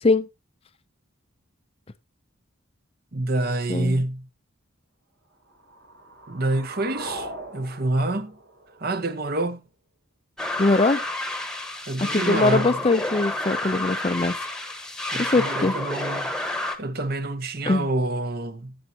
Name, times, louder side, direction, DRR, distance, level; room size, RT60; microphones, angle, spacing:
voice 1, 3.1-4.3 6.3-8.4 8.8-9.7 11.9-12.8 15.1-16.3 16.8-18.8, right 2 dB, 45° right, 1.0 m, -27 dB
voice 2, 3.7-4.0 10.6-11.0 12.0-14.4 15.2-15.8 17.7-17.9, left 3 dB, 30° left, 0.5 m, -22 dB
sound 1, 5.4-9.4, right 1 dB, 70° right, 3.1 m, -40 dB
sound 2, 10.4-16.8, left 1 dB, 5° left, 1.2 m, -30 dB
14.0 x 7.8 x 2.8 m
head